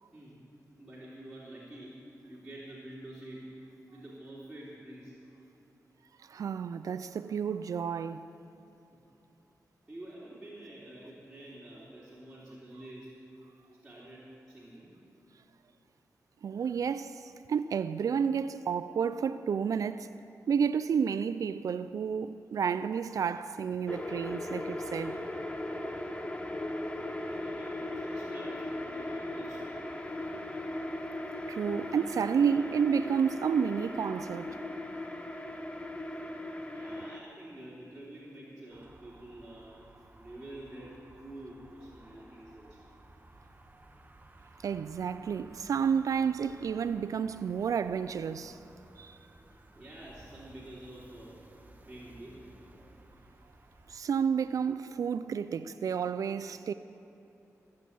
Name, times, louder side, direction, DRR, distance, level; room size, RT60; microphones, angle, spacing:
voice 1, 0.1-0.4 0.8-2.0 2.3-3.5 3.9-5.2 8.9-9.0 9.9-13.1 13.8-14.9 27.2-29.7 36.7-39.8 40.1-42.8 49.8-51.3 51.8-52.4, right 1 dB, 10° right, 3.4 m, -48 dB
voice 2, 6.2-8.3 16.4-20.1 20.5-25.2 31.5-34.6 44.6-48.6 49.0-49.2 53.9-56.7, right 7 dB, 75° right, 0.4 m, -31 dB
sound 1, 23.9-37.2, left 1 dB, 20° left, 1.0 m, -38 dB
sound 2, 38.7-54.0, right 2 dB, 30° right, 1.0 m, -56 dB
16.0 x 7.5 x 8.4 m
cardioid pair, 65°, 6 cm